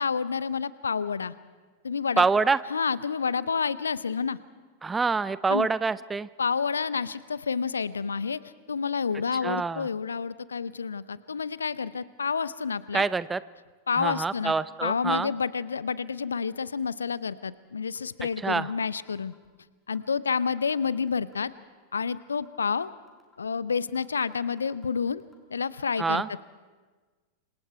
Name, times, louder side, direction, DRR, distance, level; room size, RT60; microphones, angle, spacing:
voice 1, 0.0-1.3 1.8-2.2 2.7-4.4 5.5-5.7 6.4-8.4 8.7-13.1 13.9-14.5 14.8-19.3 19.9-21.5 21.9-22.9 23.4-25.2 25.5-26.2, left 5 dB, 75° left, 18 dB, 0.7 m, -29 dB
voice 2, 2.2-2.6 4.8-6.3 9.4-9.9 12.9-13.4 14.0-15.3 18.4-18.7 26.0-26.3, right 4 dB, 15° right, 17 dB, 0.6 m, -26 dB
sound 1, 18.0-18.1 18.3-19.5 20.0-20.1 20.3-21.5 22.0-22.1 22.3-23.5 24.0-24.1 24.3-25.4, left 3 dB, 10° left, 5.1 m, -61 dB
27.5 x 26.5 x 4.6 m, 1.4 s
figure-of-eight pair, 90°, 0 cm